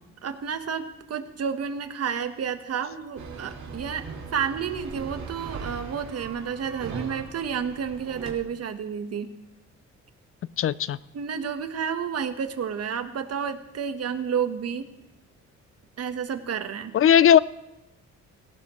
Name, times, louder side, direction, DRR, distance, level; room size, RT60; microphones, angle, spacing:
voice 1, 0.2-4.0 4.3-9.3 11.1-14.9 16.0-16.9, right 7 dB, 55° right, 8 dB, 1.3 m, -30 dB
sound 1, 3.2-8.3, right 5 dB, 70° right, 2.6 m, -39 dB
voice 2, 10.6-11.0 16.9-17.4, left 9 dB, 45° left, 19 dB, 0.5 m, -17 dB
17.5 x 17.0 x 3.2 m, 0.95 s
cardioid pair, 90°, 30 cm